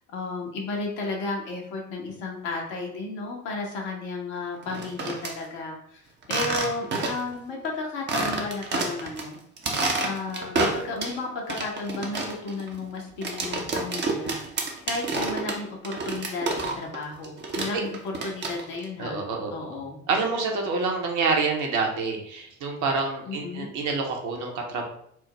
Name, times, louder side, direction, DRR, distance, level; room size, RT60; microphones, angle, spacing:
voice 1, 0.1-9.4 10.0-19.2 19.5-20.0 23.2-23.7, left 3 dB, 55° left, 0 dB, 1.1 m, -33 dB
sound 1, 4.6-5.3 6.2-7.3 7.6-7.7 8.1-9.2 9.6-11.2 11.5-17.0 17.2-18.8, right 3 dB, 25° right, 0.7 m, -29 dB
voice 2, 19.0-19.5 20.1-24.9, right 4 dB, 45° right, 1 dB, 1.0 m, -27 dB
4.5 x 2.0 x 3.3 m, 0.69 s
figure-of-eight pair, 60°, 42 cm